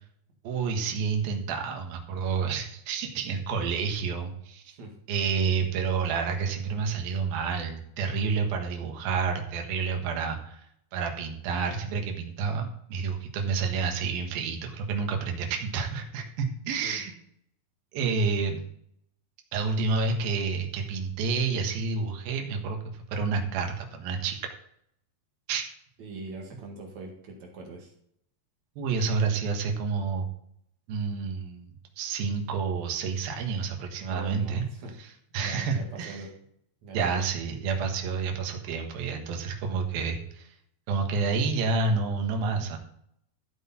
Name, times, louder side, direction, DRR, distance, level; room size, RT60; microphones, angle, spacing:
voice 1, 0.4-4.8 5.1-10.7 10.9-17.1 17.9-18.6 19.5-24.4 25.5-25.6 28.8-30.3 30.9-34.7 35.3-36.2 36.9-40.5 40.9-42.8, right 5 dB, 65° right, 4 dB, 3.2 m, -29 dB
voice 2, 26.0-27.9 34.1-34.9 35.3-36.3 36.8-37.3, right 3 dB, 50° right, 0 dB, 3.1 m, -42 dB
14.5 x 7.9 x 4.4 m, 0.70 s
omnidirectional pair, 4.8 m